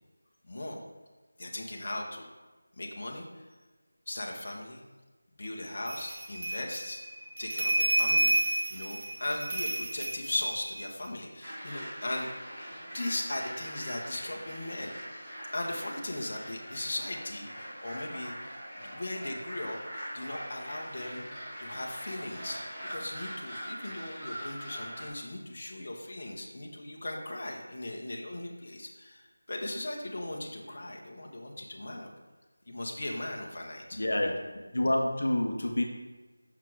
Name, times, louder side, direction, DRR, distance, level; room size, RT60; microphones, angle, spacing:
voice 1, 0.4-0.8 1.4-2.3 2.8-3.5 4.1-4.8 5.4-7.0 7.4-12.3 12.8-21.3 21.6-32.1 32.7-34.2, left 1 dB, 45° left, 0 dB, 1.0 m, -38 dB
sound 1, 5.9-11.1, right 1 dB, 35° right, 0.9 m, -30 dB
sound 2, 11.4-25.1, equal, 15° right, 1.7 m, -42 dB
voice 2, 34.0-34.3 34.7-35.8, left 1 dB, 70° left, 1 dB, 0.9 m, -27 dB
5.9 x 5.8 x 4.6 m, 1.3 s
figure-of-eight pair, 175°, 0 cm